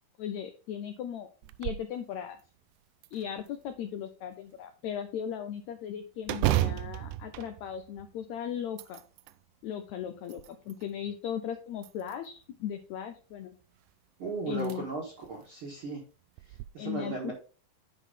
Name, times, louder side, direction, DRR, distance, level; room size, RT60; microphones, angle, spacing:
voice 1, 0.2-1.3 1.6-2.4 3.1-9.0 9.6-13.5 14.5-14.8 16.8-17.3, left 9 dB, 85° left, 8 dB, 1.6 m, -37 dB
sound 1, 1.4-1.9 2.4-2.5 3.0-3.8 6.2-8.2 8.6-9.4 10.0-10.9 11.8-12.4 13.9-14.0 14.5-14.8 15.2-15.3 16.4-16.7, right 15 dB, 80° right, 1.9 m, -33 dB
voice 2, 14.2-16.0 16.7-17.3, right 3 dB, 50° right, -2 dB, 1.8 m, -36 dB
10.0 x 4.6 x 3.8 m, 0.36 s
omnidirectional pair, 4.0 m